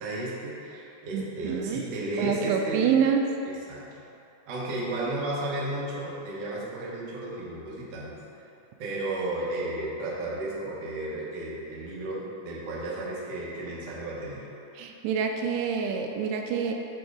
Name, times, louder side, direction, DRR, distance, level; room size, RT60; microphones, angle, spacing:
voice 1, 0.0-2.9 3.4-3.8 4.5-8.2 8.8-14.4, right 1 dB, 65° right, -6 dB, 1.5 m, -33 dB
voice 2, 1.1-1.8 2.2-3.2 14.8-16.7, right 7 dB, 85° right, 3 dB, 2.6 m, -27 dB
8.7 x 3.6 x 5.0 m, 2.7 s
omnidirectional pair, 4.6 m